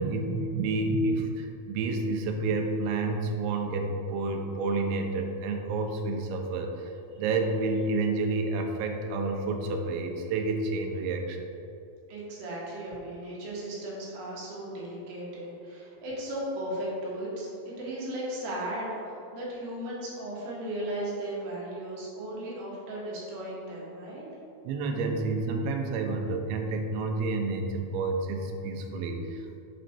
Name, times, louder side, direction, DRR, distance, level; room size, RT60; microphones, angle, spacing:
voice 1, 0.0-11.5 24.7-29.6, right 3 dB, 85° right, 3 dB, 3.0 m, -29 dB
voice 2, 12.1-24.3, right 1 dB, 65° right, -5 dB, 3.3 m, -36 dB
7.6 x 5.1 x 4.3 m, 2.7 s
omnidirectional pair, 5.3 m